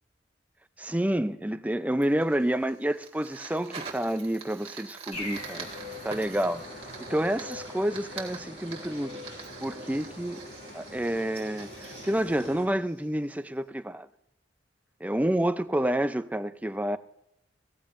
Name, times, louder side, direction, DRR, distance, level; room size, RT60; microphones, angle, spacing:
voice 1, 0.8-6.6 7.1-9.1 9.6-10.4 10.7-14.1 15.0-17.0, right 1 dB, 10° right, 0.5 m, -29 dB
Fire, 2.0-13.4, right 5 dB, 30° right, 1.8 m, -45 dB
sound 1, 5.1-12.7, left 1 dB, 40° left, 4.3 m, -42 dB
17.0 x 14.0 x 2.6 m
head